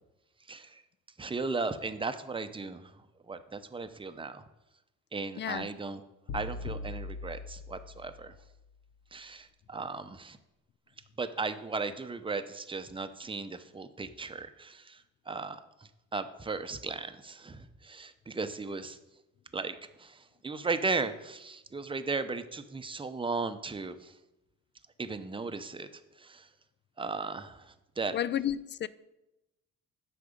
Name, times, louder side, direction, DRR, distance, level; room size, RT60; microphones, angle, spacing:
voice 1, 0.5-0.8 1.2-2.9 3.3-4.4 5.1-6.0 6.3-8.3 9.1-10.4 11.2-19.0 19.5-24.1 25.0-25.9 26.2-26.5 27.0-28.1, right 4 dB, 15° right, 0.6 m, -36 dB
voice 2, 5.4-5.7 28.1-28.9, left 10 dB, 40° left, 0.4 m, -31 dB
sound 1, 6.3-8.5, left 3 dB, 85° left, 0.8 m, -40 dB
8.3 x 5.9 x 5.1 m
cardioid pair, 90°, 30 cm